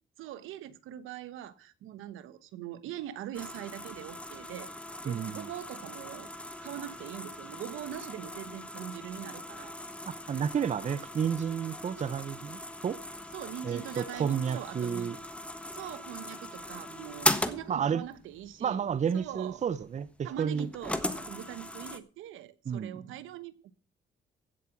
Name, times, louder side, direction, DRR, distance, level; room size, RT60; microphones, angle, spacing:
voice 1, 0.2-4.7 5.0-6.3 6.6-9.7 10.3-10.5 12.0-12.2 13.3-15.1 15.7-18.8 19.1-19.6 20.2-23.7, right 11 dB, 90° right, 1.0 m, -42 dB
sound 1, 3.3-22.0, left 1 dB, 5° left, 1.3 m, -39 dB
voice 2, 5.1-5.5 10.1-13.0 13.6-15.2 17.7-18.0 18.6-20.7 22.7-23.0, right 7 dB, 35° right, 0.6 m, -31 dB
16.0 x 7.5 x 5.9 m
cardioid pair, 90°, 20 cm